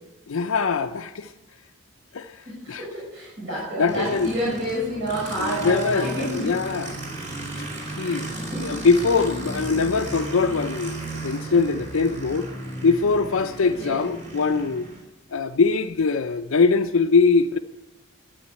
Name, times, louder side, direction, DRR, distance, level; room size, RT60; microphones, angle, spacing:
voice 1, 0.3-1.3 2.1-2.8 3.8-4.3 5.4-7.0 7.6-7.7 8.0-8.3 8.6-12.5 12.8-14.9 15.3-17.6, left 4 dB, 80° left, 0.5 m, -22 dB
voice 2, 2.4-6.5 8.0-8.9 13.6-14.0, equal, 60° right, 6.6 m, -29 dB
Aircraft, 3.9-15.0, right 2 dB, 35° right, 4.3 m, -34 dB
12.5 x 9.0 x 9.1 m
head